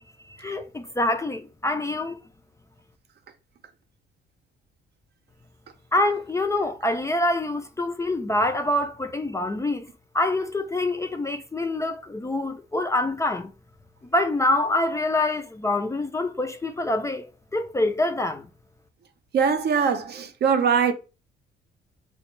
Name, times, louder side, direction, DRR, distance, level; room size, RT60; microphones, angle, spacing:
voice 1, 0.4-2.2 5.9-9.9 10.1-13.5 14.0-18.5, left 2 dB, 15° left, 0.3 m, -25 dB
voice 2, 19.3-20.9, right 6 dB, 55° right, 0.6 m, -22 dB
3.4 x 2.1 x 3.0 m
cardioid pair, 90°, 20 cm